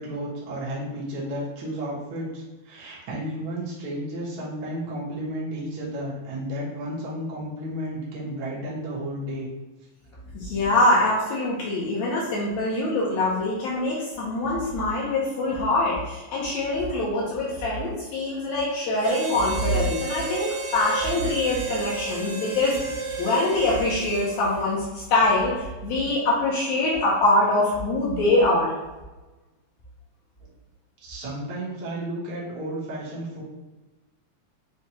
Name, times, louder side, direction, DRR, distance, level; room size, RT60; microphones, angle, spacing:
voice 1, 0.0-9.5 31.0-33.4, right 1 dB, 65° right, -6 dB, 1.4 m, -32 dB
voice 2, 10.3-28.7, left 2 dB, 90° left, -5 dB, 1.6 m, -24 dB
Harmonica, 19.0-24.6, right 4 dB, 90° right, 2.5 m, -32 dB
5.9 x 2.2 x 2.8 m, 1.1 s
omnidirectional pair, 4.0 m